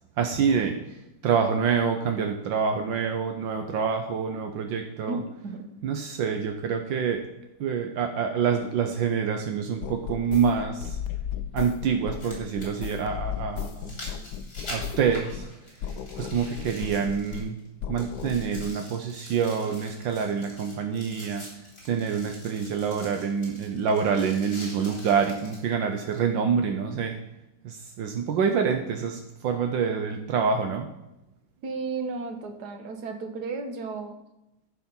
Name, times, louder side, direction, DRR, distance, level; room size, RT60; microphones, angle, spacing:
voice 1, 0.2-0.8 1.2-5.2 5.8-7.2 7.6-11.0 11.5-13.9 14.7-15.4 16.2-17.6 17.9-21.5 21.8-27.2 27.6-30.9, right 6 dB, 75° right, 5 dB, 1.5 m, -26 dB
voice 2, 5.1-5.7 31.6-34.2, right 4 dB, 60° right, 5 dB, 1.7 m, -34 dB
sound 1, 8.7-8.8 10.7-10.8 11.9-17.7 18.0-25.7 26.2-26.3, left 1 dB, 45° left, 3.8 m, -45 dB
sound 2, 9.8-15.5 15.8-17.5 17.8-18.7, left 8 dB, 70° left, 1.0 m, -36 dB
14.5 x 5.0 x 5.6 m, 0.92 s
omnidirectional pair, 2.1 m